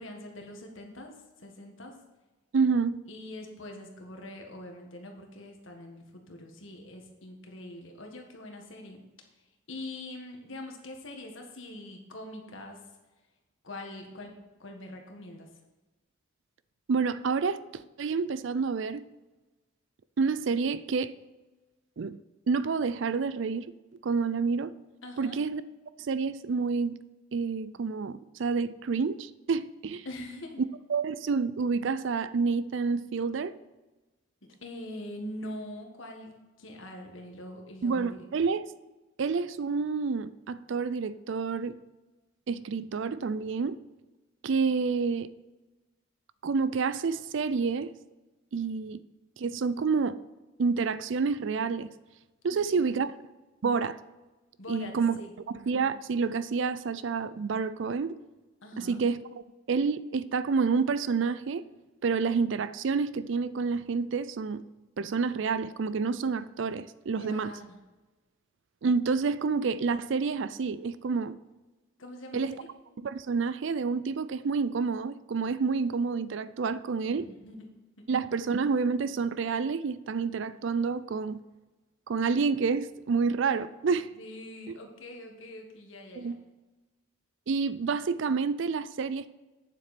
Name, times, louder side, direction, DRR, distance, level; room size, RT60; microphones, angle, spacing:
voice 1, 0.0-1.9 3.1-9.0 9.7-12.8 13.6-14.3 14.6-15.5 25.0-25.4 30.1-30.6 34.6-38.3 52.7-53.0 54.6-55.3 58.6-59.0 67.2-67.8 72.0-72.6 77.1-77.7 78.0-78.1 84.1-86.3, left 1 dB, 70° left, 1.7 m, -43 dB
voice 2, 2.5-3.0 16.9-19.0 20.2-21.1 22.0-22.2 22.5-23.7 24.0-24.7 25.2-25.6 26.0-27.0 27.3-30.1 30.9-33.5 37.8-38.7 39.2-41.8 42.5-43.8 44.4-45.3 46.4-47.9 48.5-49.0 49.4-50.2 50.6-51.9 52.4-53.1 53.6-54.0 54.7-55.2 55.7-58.2 58.8-61.6 62.0-64.6 65.0-67.5 68.8-71.4 72.3-72.5 73.0-77.3 78.1-81.4 82.1-84.1 84.7-84.8 86.2-86.4 87.5-89.3, right 5 dB, 65° right, 0.4 m, -28 dB
9.0 x 7.5 x 4.2 m
head